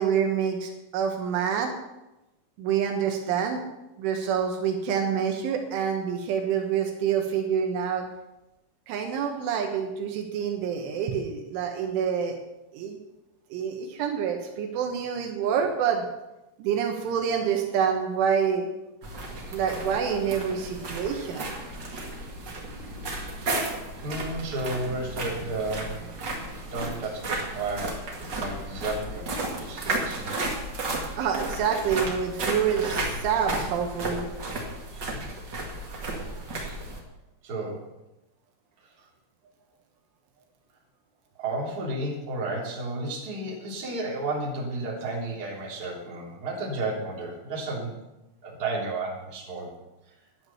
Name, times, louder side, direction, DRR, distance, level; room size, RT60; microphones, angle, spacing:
voice 1, 0.0-1.7 2.6-3.6 4.0-8.1 8.9-12.4 12.7-13.0 13.5-16.1 16.6-18.7 19.5-21.5 31.2-34.3, right 7 dB, 75° right, 4 dB, 3.7 m, -27 dB
sound 1, 19.0-37.0, right 2 dB, 55° right, 1.1 m, -33 dB
voice 2, 24.0-26.0 26.3-26.4 26.7-29.3 29.6-30.3 37.4-37.8 41.4-47.9 48.4-49.7, right 2 dB, 20° right, -4 dB, 3.0 m, -32 dB
11.5 x 10.5 x 7.0 m, 0.97 s
omnidirectional pair, 5.7 m